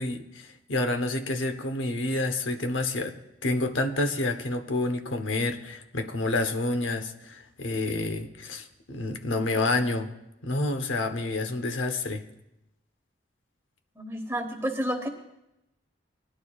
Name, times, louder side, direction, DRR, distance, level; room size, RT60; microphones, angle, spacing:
voice 1, 0.0-3.2 3.4-10.1 10.4-12.2, left 2 dB, 85° left, 7 dB, 0.9 m, -28 dB
voice 2, 14.0-15.1, equal, 15° right, 3 dB, 1.1 m, -30 dB
19.0 x 11.5 x 2.4 m, 0.89 s
head